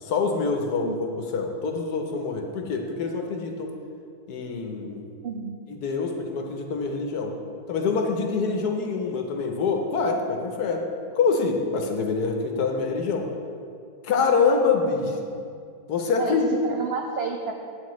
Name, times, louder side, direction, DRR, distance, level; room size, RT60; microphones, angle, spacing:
voice 1, 0.0-3.7 4.3-5.1 5.7-7.3 7.7-10.8 11.1-13.3 14.0-15.1 15.9-16.4, left 4 dB, 75° left, 3 dB, 1.4 m, -25 dB
voice 2, 5.2-5.6 15.0-15.1 16.2-17.5, right 5 dB, 80° right, 2 dB, 0.5 m, -30 dB
9.7 x 8.0 x 3.1 m, 2.4 s
omnidirectional pair, 1.7 m